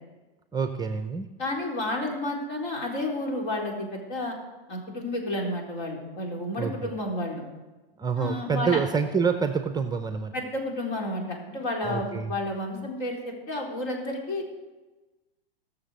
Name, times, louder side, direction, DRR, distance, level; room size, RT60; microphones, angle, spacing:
voice 1, 0.5-1.3 6.6-6.9 8.0-10.3 11.8-12.3, right 5 dB, 15° right, 8 dB, 0.6 m, -27 dB
voice 2, 1.4-4.4 4.7-7.4 8.2-8.8 10.3-14.4, left 1 dB, 55° left, 0 dB, 4.2 m, -31 dB
17.5 x 7.0 x 6.5 m, 1.2 s
hypercardioid pair, 115°, 31 cm